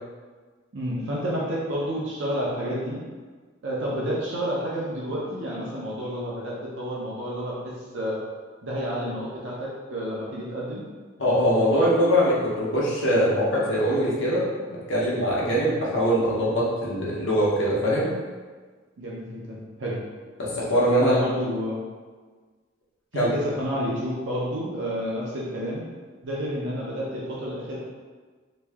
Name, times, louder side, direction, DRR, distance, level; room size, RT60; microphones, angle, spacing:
voice 1, 0.7-3.0 3.6-8.2 8.6-10.8 19.0-20.0 21.0-21.8 23.1-25.9 26.2-27.8, equal, 65° right, -5 dB, 0.7 m, -30 dB
voice 2, 11.2-14.4 14.7-18.1 20.4-21.2 23.1-23.3, equal, 75° left, -6 dB, 1.0 m, -22 dB
3.0 x 2.7 x 3.5 m, 1.4 s
head